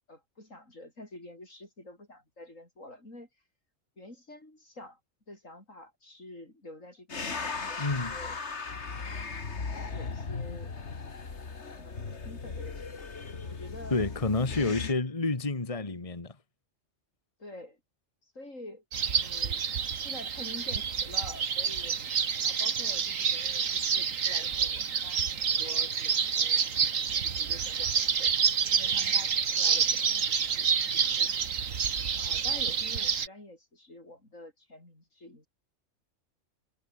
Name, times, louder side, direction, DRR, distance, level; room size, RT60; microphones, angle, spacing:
voice 1, 0.1-3.3 4.0-5.0 5.3-8.4 9.9-10.7 11.5-13.1 13.5-14.0 14.5-14.9 17.4-17.8 18.2-19.6 20.0-26.7 27.1-28.4 28.7-31.3 32.2-35.5, left 1 dB, 80° left, 8.3 m, -48 dB
sound 1, 7.1-14.9, left 4 dB, 60° left, 2.4 m, -37 dB
voice 2, 7.8-8.2 13.9-16.3, left 3 dB, 25° left, 1.8 m, -29 dB
sound 2, 18.9-33.3, right 7 dB, 90° right, 1.8 m, -28 dB
omnidirectional pair, 1.3 m